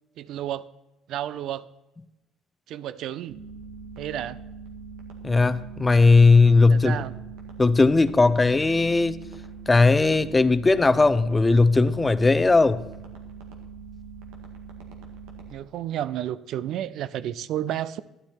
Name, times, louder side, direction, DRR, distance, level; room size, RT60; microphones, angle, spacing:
voice 1, 0.2-0.7 1.1-1.7 2.7-3.4 4.0-4.4 6.7-7.1 15.5-18.0, right 11 dB, 70° right, 17 dB, 0.4 m, -31 dB
sound 1, 3.3-15.5, right 5 dB, 85° right, 1.7 m, -42 dB
voice 2, 5.2-7.0 7.6-9.2 9.7-12.8, left 3 dB, 20° left, 13 dB, 0.6 m, -18 dB
12.0 x 10.0 x 4.3 m, 0.98 s
supercardioid pair, 75°, 0 cm